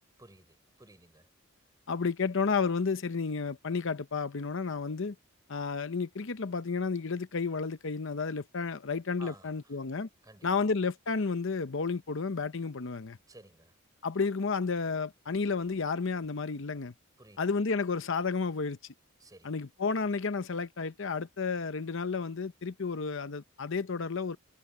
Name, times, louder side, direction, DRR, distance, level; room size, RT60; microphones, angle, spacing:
voice 1, 0.2-1.3 9.2-9.9 10.2-10.5 13.3-13.8 17.2-17.4 19.2-19.6, right 2 dB, 15° right, 6.0 m, -54 dB
voice 2, 1.9-5.2 5.5-10.1 10.4-13.2 14.0-16.9 17.4-18.8 19.4-24.4, left 4 dB, 65° left, 0.8 m, -31 dB
head